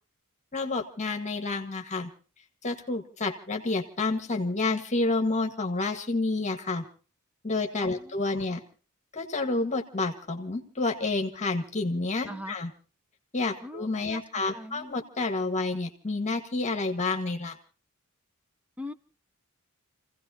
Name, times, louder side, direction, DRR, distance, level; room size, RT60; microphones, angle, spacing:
voice 1, 0.5-2.1 2.6-6.8 7.4-8.6 9.1-12.7 13.3-17.6, left 3 dB, 30° left, 1.6 m, -29 dB
voice 2, 7.8-8.1 12.3-12.6 13.6-14.9 18.8-18.9, left 1 dB, 5° right, 0.7 m, -41 dB
29.5 x 16.5 x 2.8 m
head